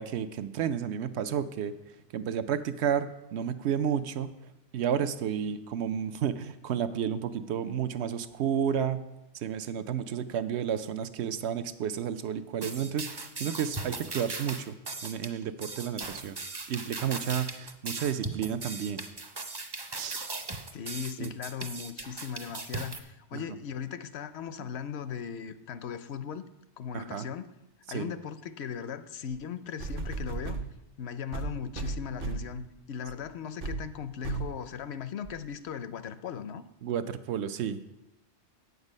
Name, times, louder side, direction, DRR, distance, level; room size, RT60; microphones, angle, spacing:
voice 1, 0.0-1.7 2.1-4.3 4.7-9.0 9.3-14.7 15.0-16.4 16.7-19.0 19.9-20.3 21.2-21.3 23.3-23.4 26.9-27.3 27.9-28.1 36.8-37.8, right 8 dB, 75° right, 11 dB, 0.8 m, -31 dB
sound 1, 12.6-23.0, right 3 dB, 25° right, 0.5 m, -38 dB
voice 2, 20.7-26.5 26.8-27.5 27.9-30.6 31.0-36.6, left 7 dB, 70° left, 12 dB, 0.8 m, -38 dB
sound 2, 29.3-29.4 29.8-30.7 31.3-32.6 33.1-33.2 33.6-33.8 34.2-34.6 35.3-35.4, right 4 dB, 55° right, 0.9 m, -34 dB
8.1 x 8.0 x 5.3 m, 0.91 s
omnidirectional pair, 1.2 m